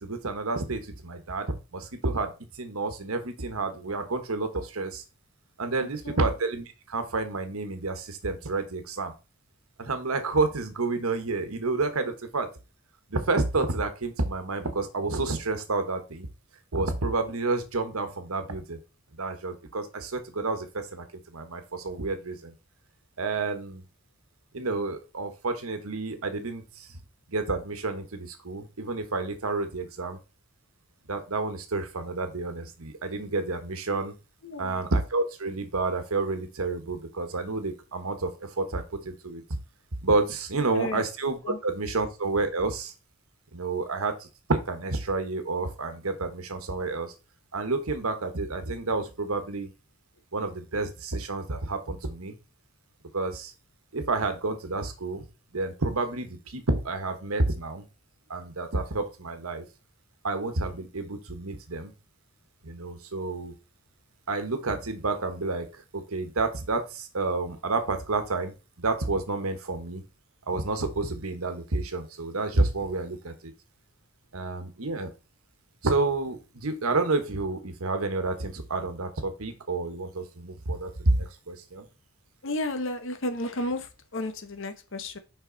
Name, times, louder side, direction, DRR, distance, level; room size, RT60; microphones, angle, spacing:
voice 1, 0.0-5.0 5.6-9.1 9.8-12.5 13.1-16.3 16.7-18.8 19.1-22.5 23.2-23.8 24.5-27.0 27.3-30.2 31.1-34.1 34.6-39.4 40.0-42.9 43.5-47.1 47.5-49.7 50.3-52.3 53.1-53.5 53.9-55.2 55.5-57.8 58.3-59.6 60.2-61.9 62.6-63.5 64.3-70.0 70.5-73.5 74.3-75.1 75.8-81.9, right 3 dB, 85° right, 8 dB, 1.2 m, -30 dB
voice 2, 5.8-6.2 34.4-34.8 40.8-41.0 41.4-41.6 82.4-85.2, left 1 dB, 60° left, 9 dB, 0.9 m, -33 dB
5.9 x 5.3 x 3.9 m, 0.30 s
head